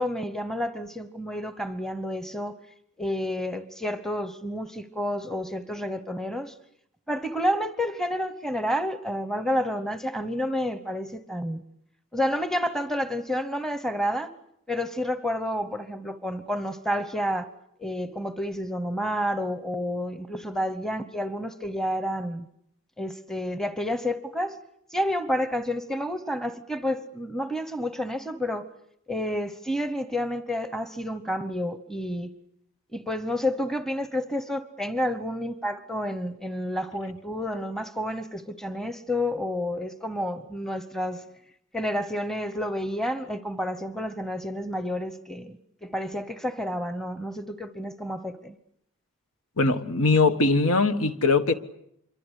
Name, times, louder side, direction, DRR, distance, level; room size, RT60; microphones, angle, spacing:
voice 1, 0.0-2.5 3.0-6.5 7.1-11.6 12.1-14.3 14.7-17.5 17.8-22.5 23.0-24.6 24.9-28.7 29.1-32.3 32.9-41.2 41.7-48.5, equal, ahead, 1.0 m, -30 dB
voice 2, 49.6-51.5, left 3 dB, 70° left, 1.5 m, -21 dB
26.5 x 23.5 x 8.3 m
head